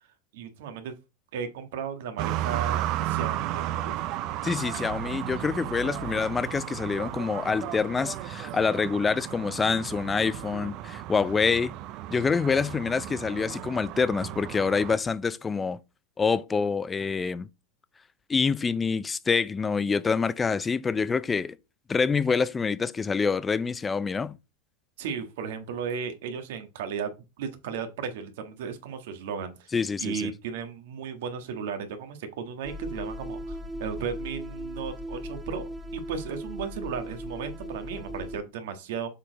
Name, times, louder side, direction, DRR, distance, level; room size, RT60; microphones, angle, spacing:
voice 1, 0.3-0.9 1.3-3.9 25.0-27.1 27.4-29.7 30.0-35.6 35.9-39.1, right 6 dB, 75° right, 1.6 m, -35 dB
sound 1, 2.2-15.0, right 13 dB, 50° right, 0.6 m, -34 dB
voice 2, 4.4-11.7 12.1-15.8 16.2-17.5 18.3-21.6 21.9-24.4 29.7-30.3, left 5 dB, 20° left, 0.5 m, -26 dB
sound 2, 32.6-38.4, equal, 10° right, 1.2 m, -37 dB
7.1 x 4.5 x 4.0 m
supercardioid pair, 115°, 0 cm